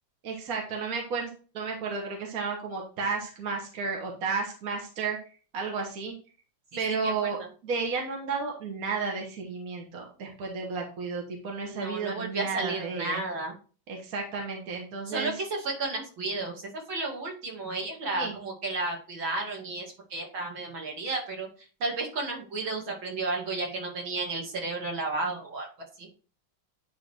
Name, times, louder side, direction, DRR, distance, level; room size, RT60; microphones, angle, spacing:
voice 1, 0.2-1.3 1.5-5.2 5.5-6.1 6.8-13.2 13.9-15.3 18.1-18.3, right 4 dB, 45° right, 0 dB, 1.7 m, -32 dB
voice 2, 6.7-7.5 11.7-13.5 15.1-25.7 26.0-26.1, right 3 dB, 70° right, -1 dB, 3.0 m, -33 dB
10.0 x 3.9 x 3.5 m, 0.36 s
omnidirectional pair, 2.3 m